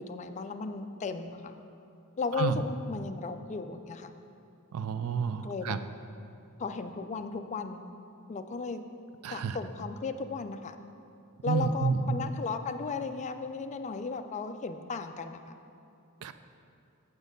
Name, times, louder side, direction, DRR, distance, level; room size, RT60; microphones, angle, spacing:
voice 1, 0.0-1.6 2.2-4.1 5.4-5.8 6.6-7.8 8.3-8.8 9.3-10.8 11.4-15.5, left 4 dB, 35° left, 8 dB, 0.4 m, -35 dB
voice 2, 4.7-5.8 9.2-9.6 11.5-12.3 16.2-16.3, right 5 dB, 85° right, 11 dB, 0.4 m, -30 dB
7.2 x 6.2 x 5.2 m, 2.6 s
head